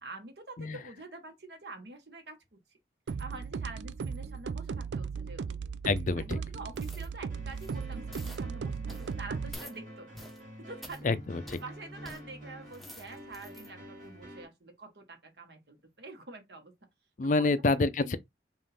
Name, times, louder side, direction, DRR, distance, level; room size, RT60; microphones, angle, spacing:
voice 1, 0.0-2.6 3.2-5.6 6.2-10.1 10.6-11.2 11.6-16.7 17.2-17.6 18.0-18.2, right 2 dB, 70° right, 1.4 m, -46 dB
sound 1, 3.1-9.5, right 5 dB, 85° right, 0.4 m, -37 dB
voice 2, 5.8-6.4 11.0-11.4 17.2-18.2, left 3 dB, 45° left, 0.4 m, -27 dB
sound 2, 6.7-7.1 7.5-7.8 8.1-8.4 8.9-9.1 9.5-9.8 10.1-10.4 10.8-11.0 11.5-11.6 12.0-12.2 12.6-13.7 14.1-14.3, equal, ahead, 0.7 m, -49 dB
sound 3, 7.3-14.5, equal, 50° right, 2.4 m, -48 dB
5.3 x 2.5 x 3.4 m
head